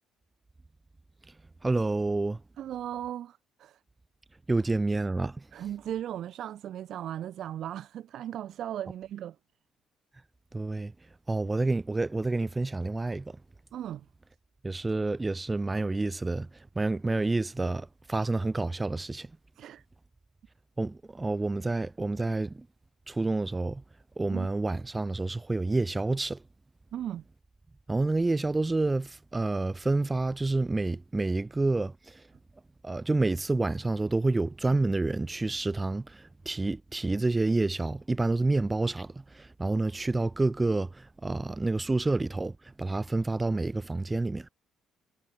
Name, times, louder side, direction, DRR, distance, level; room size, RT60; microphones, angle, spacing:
voice 1, 1.6-2.4 4.5-5.3 10.5-10.9 11.3-13.2 14.6-16.5 16.8-19.3 20.8-22.5 23.1-23.8 24.2-26.4 27.9-31.9 32.8-36.0 36.5-39.1 39.6-40.9 41.2-42.5 42.8-44.5, right 2 dB, 20° right, 1.9 m, -28 dB
voice 2, 2.6-3.8 5.5-9.4 13.7-14.1 19.6-19.8 24.3-24.5 26.9-27.2, right 11 dB, 60° right, 3.7 m, -37 dB
figure-of-eight pair, 50°, 0 cm